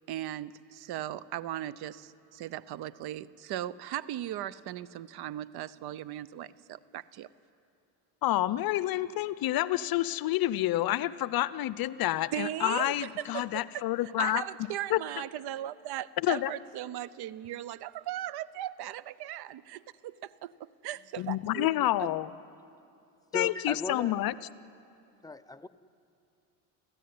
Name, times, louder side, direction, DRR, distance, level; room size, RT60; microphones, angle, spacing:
voice 1, 0.1-7.3 12.3-13.8 14.2-21.7 22.0-22.1, right 12 dB, 55° right, 18 dB, 0.8 m, -38 dB
voice 2, 8.2-14.4 14.9-15.0 16.2-16.5 21.2-22.3 23.3-24.3, left 15 dB, 50° left, 17 dB, 0.7 m, -28 dB
voice 3, 23.3-24.1 25.2-25.7, left 2 dB, 10° left, 10 dB, 0.7 m, -37 dB
29.5 x 15.5 x 9.6 m, 2.6 s
supercardioid pair, 95°, 46 cm